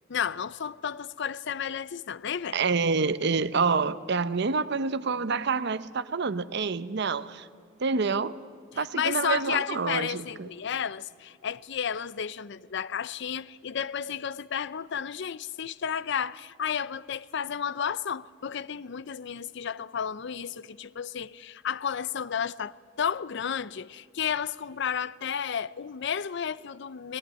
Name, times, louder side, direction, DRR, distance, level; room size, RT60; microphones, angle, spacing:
voice 1, 0.1-2.6 8.7-27.2, left 7 dB, 65° left, 0.5 m, -32 dB
voice 2, 2.5-7.5 7.8-8.4 8.8-10.5, right 4 dB, 60° right, 0.7 m, -27 dB
21.5 x 18.0 x 9.2 m
head